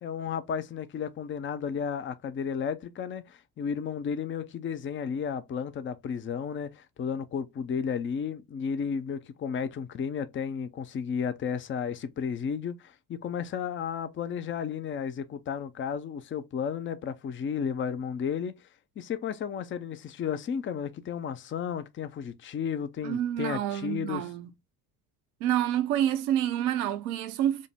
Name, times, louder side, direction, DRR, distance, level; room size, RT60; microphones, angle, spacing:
voice 1, 0.0-18.6 19.0-24.2, left 7 dB, 25° left, 0.6 m, -33 dB
voice 2, 23.0-24.5 25.4-27.7, right 11 dB, 70° right, 0.8 m, -28 dB
5.2 x 2.1 x 3.5 m
hypercardioid pair, 65°, 44 cm